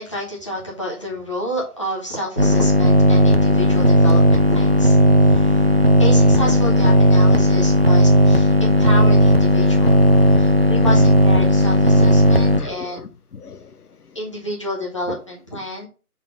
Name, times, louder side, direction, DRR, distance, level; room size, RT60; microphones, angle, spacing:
voice 1, 0.0-5.0 5.2-5.7 6.0-10.0 10.3-13.1 14.1-15.9, left 1 dB, 20° left, 1.0 m, -29 dB
sound 1, 2.4-12.6, equal, 45° right, 0.5 m, -14 dB
voice 2, 9.7-11.1 11.6-12.1 12.5-14.2, left 6 dB, 75° left, 0.9 m, -37 dB
5.8 x 4.1 x 4.8 m
figure-of-eight pair, 170°, 45 cm